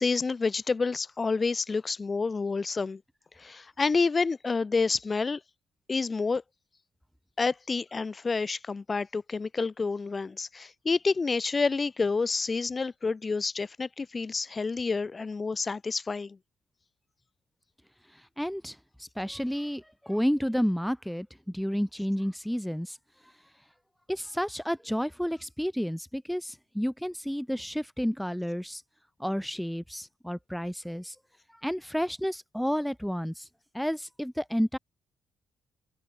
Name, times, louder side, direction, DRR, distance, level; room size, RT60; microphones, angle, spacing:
voice 1, 0.0-3.0 3.4-5.4 5.9-6.4 7.4-16.4, left 4 dB, 30° left, 2.9 m, -29 dB
voice 2, 18.1-23.0 24.1-28.8 29.2-31.2 31.5-33.5 33.7-34.8, equal, ahead, 2.5 m, -31 dB
cardioid pair, 90°, 0 cm